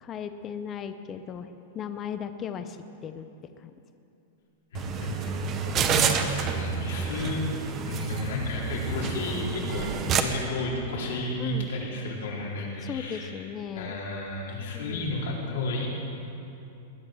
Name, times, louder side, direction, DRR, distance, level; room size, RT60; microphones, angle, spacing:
voice 1, 0.0-1.5 1.7-2.8 3.0-3.3 3.6-3.7 7.0-7.3 11.4-11.7 12.8-14.0 14.7-15.1, left 8 dB, 20° left, 9 dB, 0.5 m, -36 dB
voice 2, 4.7-7.5 7.8-13.3 13.7-15.9, left 2 dB, 80° left, -4 dB, 4.4 m, -32 dB
sound 1, 4.7-10.2, right 6 dB, 25° right, 0.8 m, -29 dB
20.0 x 10.5 x 6.2 m, 2.8 s
supercardioid pair, 165°, 0 cm